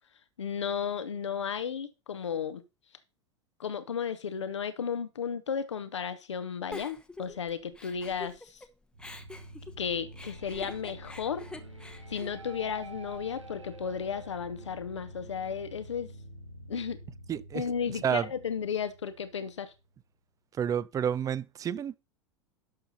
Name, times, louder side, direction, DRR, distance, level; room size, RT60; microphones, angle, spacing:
voice 1, 0.4-2.6 3.6-8.6 9.8-11.5 12.1-16.1 16.7-17.0 17.5-19.7, left 7 dB, 70° left, 0.9 m, -34 dB
Giggle, 6.7-8.7 9.0-13.2, left 2 dB, 5° left, 0.9 m, -46 dB
sound 1, 8.9-19.9, right 1 dB, 85° right, 1.3 m, -47 dB
voice 2, 17.3-17.6 18.0-18.3 20.6-22.0, right 8 dB, 20° right, 0.6 m, -29 dB
12.0 x 7.0 x 4.0 m
figure-of-eight pair, 85°, 15 cm